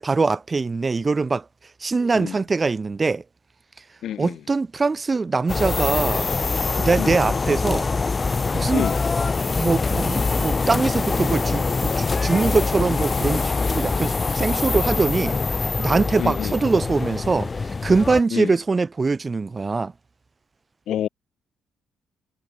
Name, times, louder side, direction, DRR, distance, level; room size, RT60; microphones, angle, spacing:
voice 1, 0.0-1.4 1.8-3.2 4.2-6.3 6.8-7.9 8.5-8.9 9.6-15.4 15.8-19.9, right 4 dB, 30° right, 1.3 m, -23 dB
voice 2, 4.0-4.4 7.0-7.2 8.7-9.0 16.2-16.5 18.3-18.5 20.9-21.1, left 11 dB, 70° left, 0.4 m, -28 dB
sound 1, 5.5-18.2, left 4 dB, 30° left, 0.9 m, -24 dB
cardioid pair, 90°, 0 cm